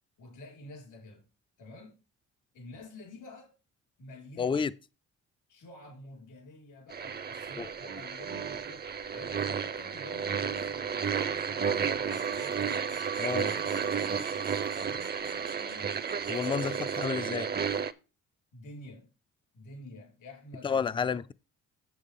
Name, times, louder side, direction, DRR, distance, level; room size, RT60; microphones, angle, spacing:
voice 1, 0.2-1.3 1.6-2.0 2.5-3.5 4.0-4.7 5.5-13.1 13.4-16.0 16.5-16.9 18.5-19.1 19.5-21.2, left 2 dB, 85° left, 4.9 m, -50 dB
voice 2, 4.4-4.7 7.6-7.7 13.2-13.5 16.3-17.5 20.6-21.3, left 6 dB, 15° left, 0.4 m, -30 dB
sound 1, 6.9-17.9, right 6 dB, 35° right, 0.6 m, -32 dB
sound 2, 12.1-17.3, right 7 dB, 85° right, 1.2 m, -45 dB
8.3 x 7.7 x 3.7 m
cardioid pair, 90°, 30 cm